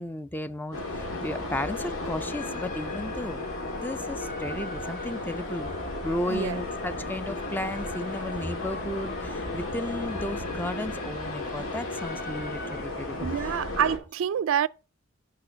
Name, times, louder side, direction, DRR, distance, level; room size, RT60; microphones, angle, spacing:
voice 1, 0.0-5.7 6.0-13.6, left 1 dB, 10° left, 0.4 m, -34 dB
sound 1, 0.7-14.0, left 2 dB, 90° left, 2.6 m, -35 dB
sound 2, 1.5-12.8, left 3 dB, 40° left, 0.7 m, -42 dB
voice 2, 6.3-6.6 13.2-14.7, right 9 dB, 70° right, 0.3 m, -27 dB
6.5 x 5.1 x 6.7 m
head